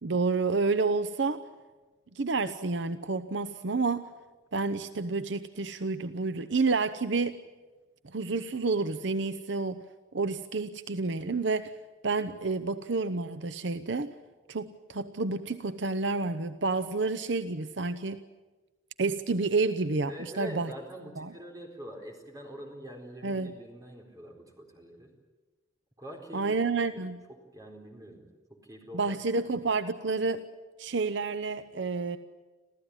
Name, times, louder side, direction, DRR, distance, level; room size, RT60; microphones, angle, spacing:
voice 1, 0.0-1.4 2.1-4.1 4.5-7.3 8.0-9.8 10.1-11.7 12.0-14.1 14.5-18.2 19.0-20.7 21.2-21.3 23.2-23.5 26.3-27.2 28.9-30.4 30.8-32.2, right 3 dB, 60° right, 11 dB, 0.8 m, -29 dB
voice 2, 20.1-25.1 26.0-26.5 26.9-29.2 29.5-29.7, equal, 15° right, 1 dB, 4.4 m, -45 dB
27.0 x 15.5 x 9.9 m, 1.3 s
head